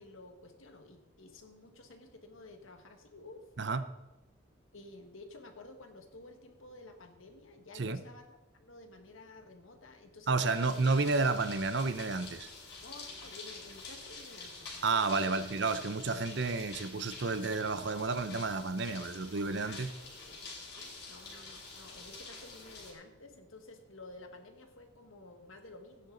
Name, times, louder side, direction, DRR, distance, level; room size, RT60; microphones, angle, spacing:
voice 1, 0.0-3.5 4.7-10.8 12.8-15.3 19.6-19.8 20.3-20.4 20.8-26.1, left 2 dB, 80° left, 5 dB, 1.6 m, -52 dB
voice 2, 10.3-12.5 14.8-19.9, right 3 dB, 55° right, 12 dB, 0.7 m, -31 dB
sound 1, 10.4-22.9, left 3 dB, 55° left, 3.5 m, -47 dB
15.0 x 10.0 x 3.9 m, 1.1 s
head